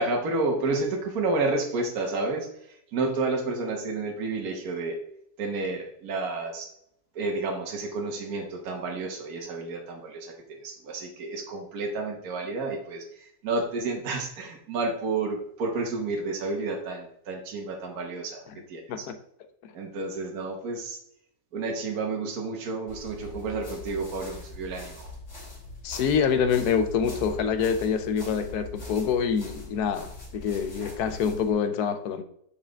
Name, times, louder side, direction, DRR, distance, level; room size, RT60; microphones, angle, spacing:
voice 1, 0.0-5.0 5.4-6.7 7.1-10.3 10.6-19.1 19.7-21.0 21.5-25.1, right 3 dB, 60° right, 1.5 m, -30 dB
sound 1, 22.9-31.5, left 2 dB, 40° left, 2.7 m, -42 dB
voice 2, 25.8-32.2, left 6 dB, 70° left, 1.1 m, -26 dB
7.1 x 5.1 x 3.5 m
omnidirectional pair, 1.9 m